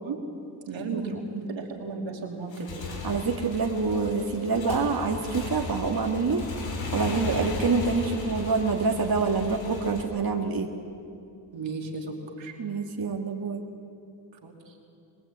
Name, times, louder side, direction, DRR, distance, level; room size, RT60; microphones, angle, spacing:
voice 1, 0.7-2.7 11.5-12.5 14.4-14.5, right 4 dB, 90° right, 0 dB, 3.0 m, -34 dB
Motorcycle / Engine, 2.4-10.0, left 3 dB, 80° left, 3.8 m, -36 dB
voice 2, 3.0-6.5 6.9-10.7 12.6-13.6, right 4 dB, 50° right, 1 dB, 1.9 m, -26 dB
23.0 x 20.0 x 8.7 m, 2.6 s
cardioid pair, 55°, 44 cm